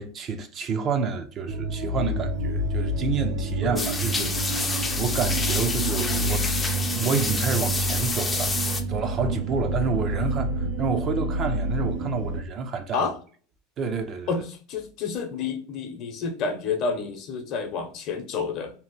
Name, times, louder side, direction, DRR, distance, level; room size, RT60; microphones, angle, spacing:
voice 1, 0.0-4.7 5.0-6.5 6.9-8.6 8.9-13.1 13.8-14.4, right 5 dB, 40° right, 0.5 m, -29 dB
sound 1, 1.5-12.4, right 1 dB, 85° right, 0.7 m, -28 dB
sound 2, 3.8-8.8, left 3 dB, 15° left, 0.4 m, -28 dB
voice 2, 14.3-18.7, left 5 dB, 50° left, 0.7 m, -29 dB
2.8 x 2.1 x 3.1 m
supercardioid pair, 125°, 0 cm